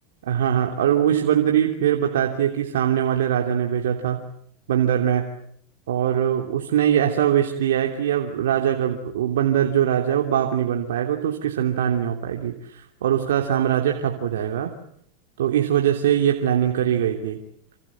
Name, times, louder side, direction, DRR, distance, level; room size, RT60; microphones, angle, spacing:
voice 1, 0.3-4.2 4.7-5.3 5.9-14.7 15.4-17.4, right 10 dB, 85° right, 3 dB, 3.1 m, -22 dB
29.0 x 25.5 x 7.4 m, 0.66 s
supercardioid pair, 125°, 0 cm